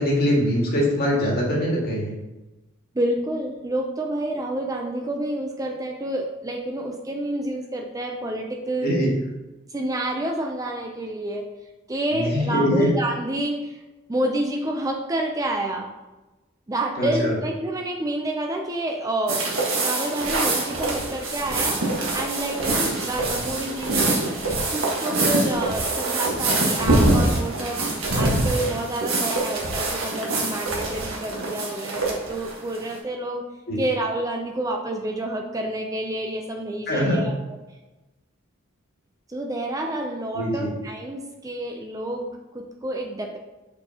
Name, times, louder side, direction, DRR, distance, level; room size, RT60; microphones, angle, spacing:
voice 1, 0.0-2.2 8.8-9.1 12.1-12.9 17.0-17.3 33.7-33.8 36.9-37.2 40.3-40.7, equal, 50° left, -3 dB, 1.8 m, -22 dB
voice 2, 2.9-8.9 9.7-11.5 11.9-13.8 14.1-15.9 16.7-19.4 19.8-21.8 22.1-24.2 24.7-27.9 28.2-33.4 33.8-37.3 39.3-43.4, right 1 dB, 15° right, 2 dB, 0.5 m, -28 dB
sound 1, 19.3-32.9, right 2 dB, 80° right, 1.4 m, -24 dB
6.6 x 5.2 x 2.8 m, 1.1 s
head